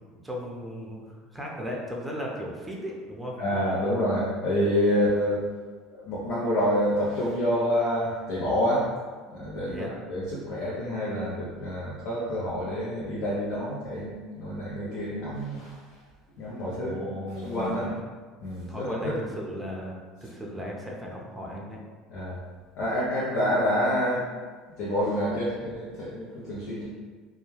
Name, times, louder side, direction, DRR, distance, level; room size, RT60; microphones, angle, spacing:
voice 1, 0.0-3.4 9.7-9.9 16.8-17.9 18.7-21.8, equal, 5° right, -2 dB, 0.6 m, -36 dB
voice 2, 3.4-5.4 5.9-8.9 9.3-16.0 16.4-17.0 17.4-17.9 18.4-19.2 22.1-22.4 22.8-24.3 24.8-26.8, equal, 60° left, -8 dB, 0.7 m, -28 dB
2.3 x 2.2 x 3.1 m, 1.5 s
hypercardioid pair, 85°, 0 cm